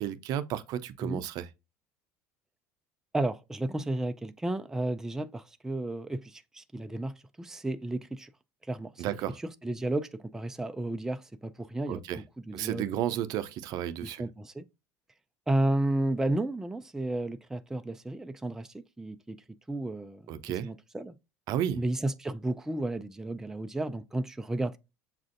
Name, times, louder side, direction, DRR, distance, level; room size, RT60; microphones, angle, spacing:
voice 1, 0.0-1.5 9.0-9.4 11.9-12.2 12.5-14.2 20.3-20.7 21.5-21.8, right 11 dB, 60° right, 0.5 m, -32 dB
voice 2, 3.1-8.3 8.7-9.0 9.4-12.9 14.0-14.7 15.5-19.4 19.7-21.1 21.8-24.8, right 1 dB, 5° right, 0.4 m, -33 dB
7.2 x 2.5 x 2.5 m
supercardioid pair, 100°, 7 cm